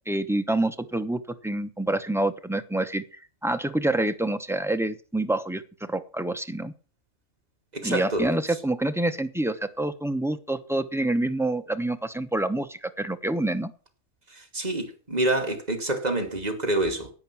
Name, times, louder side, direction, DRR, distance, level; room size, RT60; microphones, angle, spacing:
voice 1, 0.0-3.0 3.4-5.6 5.9-6.7 7.8-13.7, right 1 dB, 5° right, 0.6 m, -27 dB
voice 2, 7.7-8.3 14.4-17.1, right 2 dB, 30° right, 2.6 m, -27 dB
11.0 x 8.7 x 6.1 m
omnidirectional pair, 1.5 m